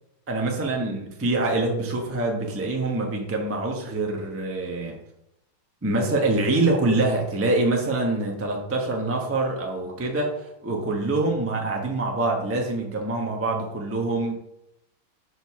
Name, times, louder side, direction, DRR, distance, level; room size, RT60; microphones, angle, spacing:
voice 1, 0.3-4.9 5.8-14.3, right 2 dB, 20° right, 0 dB, 0.3 m, -25 dB
5.2 x 4.6 x 5.9 m, 0.83 s
omnidirectional pair, 2.4 m